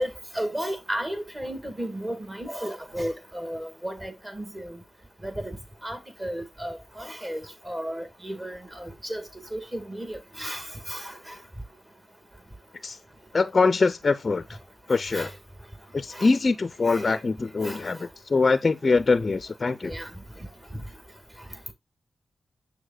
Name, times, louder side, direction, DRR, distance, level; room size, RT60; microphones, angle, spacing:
voice 1, 0.0-4.8 5.2-5.6 5.8-9.2 9.5-11.3 15.1-15.3 16.1-16.3 16.9-17.1 17.6-17.8 19.8-20.1, equal, 20° right, 1.8 m, -34 dB
voice 2, 13.3-14.4 14.9-15.3 15.9-19.9, left 4 dB, 40° left, 0.5 m, -23 dB
6.9 x 6.5 x 2.2 m
cardioid pair, 90°, 0 cm